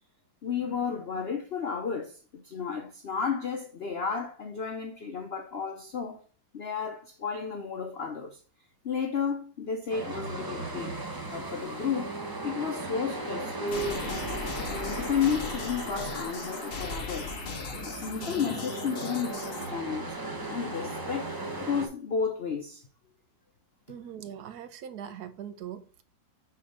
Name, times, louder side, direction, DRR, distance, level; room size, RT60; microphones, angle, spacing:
voice 1, 0.4-6.2 6.5-8.4 8.8-11.0 11.3-12.1 12.4-14.3 14.7-20.1 20.5-22.8 23.9-24.0, left 6 dB, 85° left, 0.5 m, -32 dB
sound 1, 9.9-21.9, right 2 dB, 25° right, 0.4 m, -37 dB
sound 2, 13.7-19.7, left 4 dB, 40° left, 0.8 m, -38 dB
voice 2, 23.9-26.0, right 9 dB, 65° right, 1.1 m, -41 dB
5.8 x 4.3 x 5.0 m
omnidirectional pair, 2.1 m